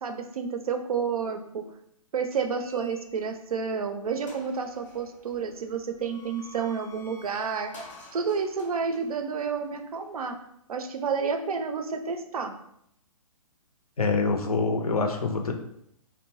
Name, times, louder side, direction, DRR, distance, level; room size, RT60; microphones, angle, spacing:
voice 1, 0.0-1.6 2.1-7.7 8.1-10.4 10.7-12.5, right 5 dB, 80° right, 6 dB, 0.4 m, -30 dB
sound 1, 2.6-3.5 3.9-4.0 4.3-10.4, left 2 dB, 10° left, 0.5 m, -50 dB
voice 2, 14.0-15.5, left 4 dB, 90° left, 4 dB, 0.5 m, -25 dB
2.6 x 2.1 x 3.1 m, 0.73 s
hypercardioid pair, 130°, 18 cm